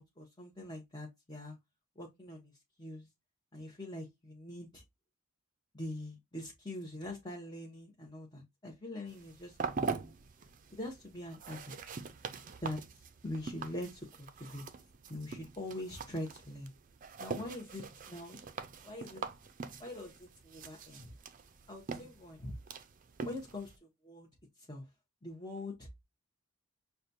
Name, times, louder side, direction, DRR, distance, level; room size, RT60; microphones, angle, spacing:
voice 1, 0.0-1.6 2.0-2.5 2.8-3.1 3.5-4.8 5.7-10.0 10.7-11.7 12.6-12.8 13.2-14.6 15.1-16.7 17.2-18.4 18.8-19.2 19.8-21.0 21.7-22.5 23.2-23.7 24.0-24.3 24.7-24.9 25.2-25.9, left 1 dB, 20° left, 0.8 m, -43 dB
sound 1, 9.1-23.8, right 4 dB, 40° right, 0.4 m, -43 dB
6.4 x 2.3 x 2.6 m
head